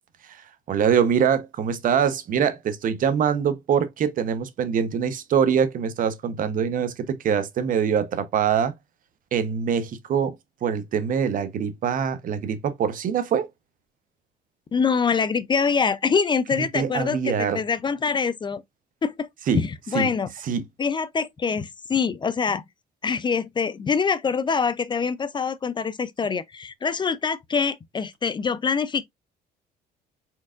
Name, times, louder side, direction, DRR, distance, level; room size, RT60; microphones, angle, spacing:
voice 1, 0.7-8.8 9.3-10.3 10.6-13.5 16.7-17.6 19.5-19.6 19.9-20.1 20.5-20.6, right 7 dB, 55° right, 0.8 m, -24 dB
voice 2, 14.7-18.6 19.0-19.3 19.5-20.3 20.8-22.6 23.0-29.0, left 5 dB, 25° left, 0.5 m, -24 dB
4.7 x 4.5 x 2.4 m
cardioid pair, 110°, 17 cm